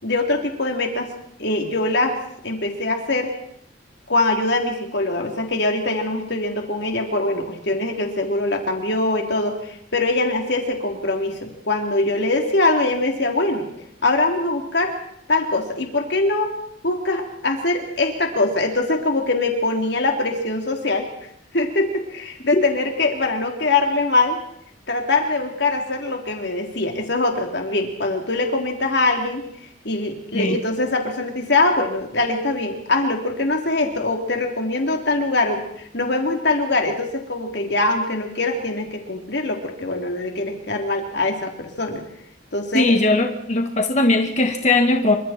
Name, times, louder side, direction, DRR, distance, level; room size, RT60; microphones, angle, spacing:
voice 1, 0.0-1.1 1.4-2.1 2.4-3.3 4.1-13.7 14.0-14.9 15.3-16.5 16.8-21.1 21.5-24.4 24.9-29.4 29.8-42.0 42.5-42.9, left 2 dB, 65° left, 2 dB, 3.5 m, -22 dB
voice 2, 42.7-45.2, left 2 dB, 40° left, 4 dB, 1.9 m, -19 dB
28.0 x 25.5 x 4.5 m, 0.73 s
head